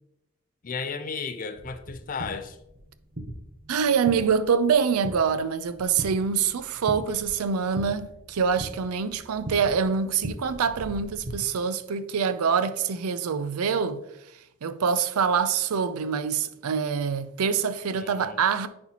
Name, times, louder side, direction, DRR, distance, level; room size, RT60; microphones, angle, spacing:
voice 1, 0.6-2.6 18.0-18.4, left 5 dB, 40° left, 0.5 m, -34 dB
sound 1, 1.5-11.3, right 1 dB, 40° right, 0.8 m, -40 dB
voice 2, 3.7-14.0 14.6-18.7, right 6 dB, 90° right, 0.5 m, -25 dB
9.8 x 4.3 x 2.9 m
head